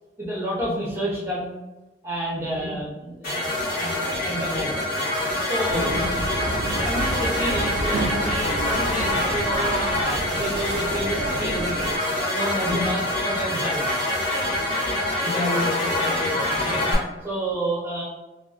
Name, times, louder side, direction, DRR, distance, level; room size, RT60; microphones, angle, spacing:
voice 1, 0.2-1.6 2.0-4.0 4.2-4.7 5.2-6.3 6.8-10.0 10.3-11.7 12.1-14.1 16.7-16.9 17.2-18.0, right 1 dB, 15° right, -7 dB, 0.5 m, -30 dB
sound 1, 3.2-16.9, left 1 dB, 55° left, 1.2 m, -25 dB
voice 2, 5.7-6.2 12.6-12.9 15.2-17.0, left 2 dB, 35° left, -6 dB, 0.8 m, -29 dB
sound 2, 5.7-12.0, right 2 dB, 65° right, 0.3 m, -30 dB
2.5 x 2.3 x 2.4 m, 1.1 s
head